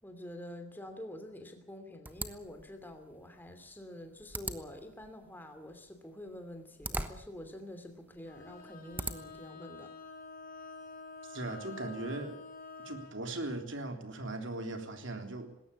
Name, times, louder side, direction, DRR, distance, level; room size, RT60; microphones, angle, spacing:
voice 1, 0.0-9.9, left 1 dB, 10° left, 6 dB, 2.9 m, -47 dB
sound 1, 2.0-9.5, right 2 dB, 10° right, 1.1 m, -44 dB
Bowed string instrument, 8.2-13.2, left 4 dB, 40° left, 4.1 m, -48 dB
voice 2, 11.3-12.4 12.8-15.5, right 2 dB, 60° right, 5 dB, 3.5 m, -39 dB
20.0 x 17.5 x 8.6 m, 0.74 s
head